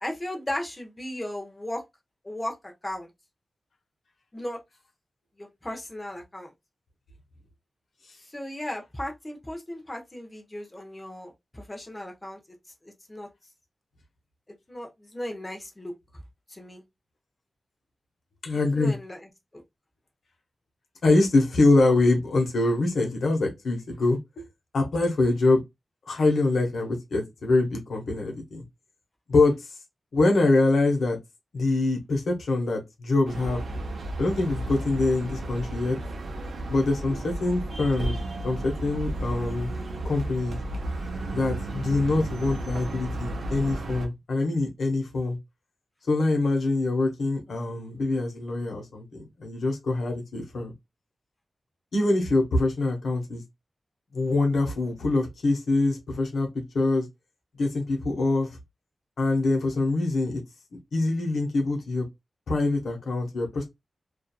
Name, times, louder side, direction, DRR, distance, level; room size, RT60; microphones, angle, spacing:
voice 1, 0.0-1.8 2.2-3.1 4.3-4.6 5.4-6.5 8.2-12.4 12.8-13.3 14.7-15.9 16.5-16.8 18.7-19.6, left 1 dB, 15° left, 0.6 m, -36 dB
voice 2, 18.4-18.9 21.0-24.4 24.7-25.6 26.1-28.6 29.3-29.8 30.1-31.2 31.5-33.7 34.2-36.0 36.7-38.2 38.4-39.7 40.0-40.6 41.3-45.4 46.1-50.7 51.9-53.4 54.1-57.1 57.6-58.5 59.2-60.4 60.9-62.1 62.5-63.6, left 2 dB, 85° left, 0.7 m, -24 dB
sound 1, 33.3-44.1, right 1 dB, 85° right, 0.6 m, -33 dB
2.7 x 2.3 x 2.2 m
wide cardioid pair, 175°, 0 cm